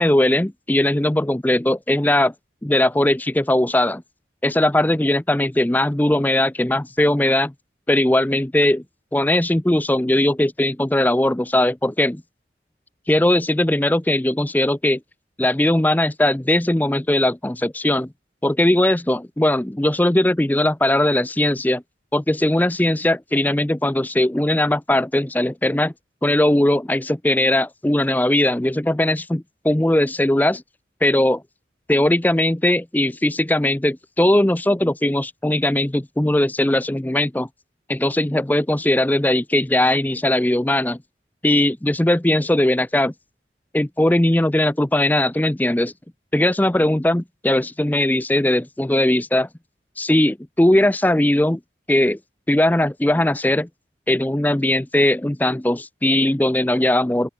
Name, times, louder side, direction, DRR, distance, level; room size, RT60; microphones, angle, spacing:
voice 1, 0.0-2.3 2.6-4.0 4.4-7.5 7.9-8.8 9.1-12.2 13.1-15.0 15.4-18.1 18.4-21.8 22.1-25.9 26.2-30.6 31.0-31.4 31.9-37.5 37.9-41.0 41.4-43.1 43.7-45.9 46.3-49.5 50.0-51.6 51.9-52.2 52.5-53.7 54.1-57.3, left 1 dB, 10° left, 0.5 m, -19 dB
open air
head